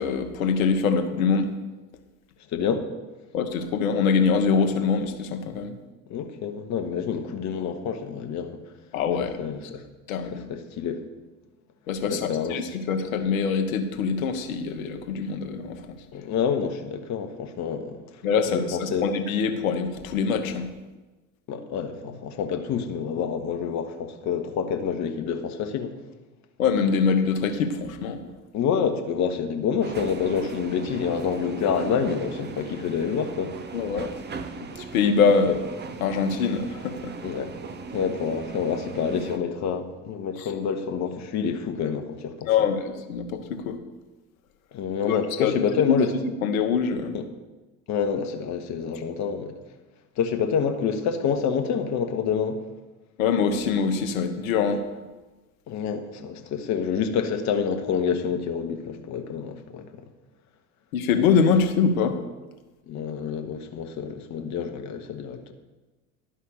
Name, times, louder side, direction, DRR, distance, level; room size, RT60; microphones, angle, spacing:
voice 1, 0.0-1.5 3.3-5.7 8.9-9.4 10.1-10.4 11.9-15.8 18.2-20.7 26.6-28.3 33.7-34.1 34.8-35.6 36.0-37.1 40.4-40.5 42.5-43.8 45.1-46.0 46.4-47.2 53.2-54.9 60.9-62.2, left 5 dB, 70° left, 6 dB, 1.2 m, -24 dB
voice 2, 2.5-2.9 6.1-8.6 9.4-9.8 10.3-11.0 12.1-12.6 16.1-18.0 18.5-19.0 21.5-25.9 28.5-33.5 35.5-35.6 37.2-37.5 37.9-42.5 44.7-46.1 47.1-47.2 47.9-49.5 50.2-52.6 55.7-59.8 62.9-65.5, left 7 dB, 40° left, 6 dB, 1.2 m, -27 dB
sound 1, 29.8-39.4, right 4 dB, 25° right, 0.9 m, -38 dB
11.5 x 5.6 x 6.5 m, 1.2 s
figure-of-eight pair, 70°, 43 cm